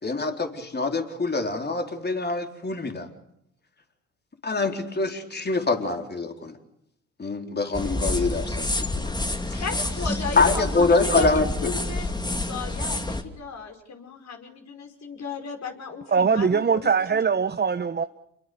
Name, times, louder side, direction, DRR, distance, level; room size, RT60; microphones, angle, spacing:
voice 1, 0.0-3.1 4.4-6.5 7.2-9.1 9.5-9.6 10.4-11.5, left 3 dB, 25° left, 4.1 m, -25 dB
sound 1, 7.7-13.2, left 2 dB, 10° left, 2.7 m, -28 dB
voice 2, 9.6-16.8 17.1-17.2, left 5 dB, 45° left, 5.4 m, -35 dB
voice 3, 16.1-18.0, right 6 dB, 25° right, 1.1 m, -22 dB
29.0 x 22.0 x 7.0 m
hypercardioid pair, 55°, 37 cm